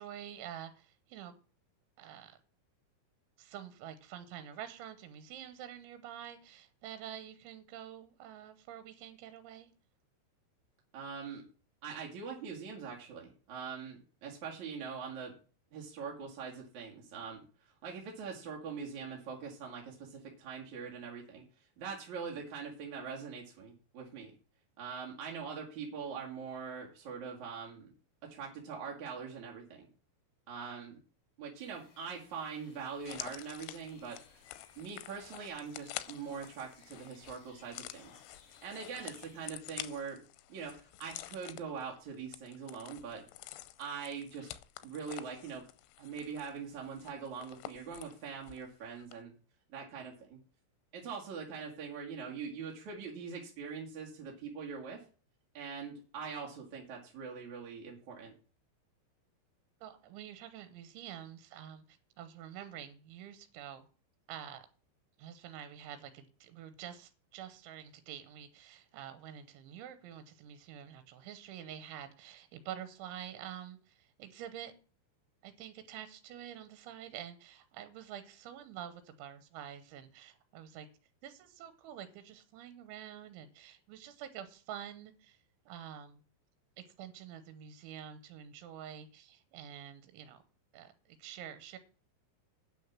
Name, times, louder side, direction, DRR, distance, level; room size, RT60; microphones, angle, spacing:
voice 1, 0.0-1.4 2.0-2.3 3.4-9.7 59.8-63.8 64.3-64.7 65.2-74.7 75.4-80.9 81.2-85.4 85.7-86.2 86.8-90.4 90.7-91.8, right 10 dB, 85° right, 12 dB, 3.3 m, -47 dB
voice 2, 10.9-11.4 11.8-15.3 15.7-21.4 21.8-24.3 24.8-27.9 28.2-29.9 30.5-31.0 31.4-34.2 34.8-38.2 38.5-40.2 40.5-43.2 43.8-44.5 44.8-45.6 46.0-49.3 49.7-50.4 50.9-55.0 55.5-58.3, right 6 dB, 50° right, -2 dB, 2.7 m, -43 dB
sound 1, 31.6-39.5, left 4 dB, 55° left, 5.2 m, -63 dB
sound 2, 33.0-48.7 49.0-49.1, left 15 dB, 90° left, 3.2 m, -48 dB
9.6 x 6.4 x 7.3 m, 0.38 s
omnidirectional pair, 5.3 m